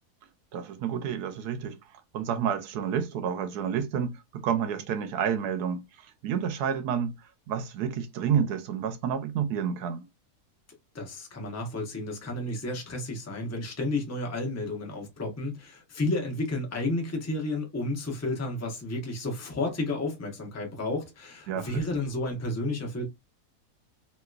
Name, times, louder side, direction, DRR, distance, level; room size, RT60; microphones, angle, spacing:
voice 1, 0.5-1.8 2.1-5.8 6.2-7.1 7.5-10.1 21.5-21.8, right 8 dB, 85° right, 1.2 m, -29 dB
voice 2, 10.9-23.0, left 2 dB, 15° left, 0.6 m, -32 dB
3.0 x 2.8 x 2.3 m
omnidirectional pair, 1.7 m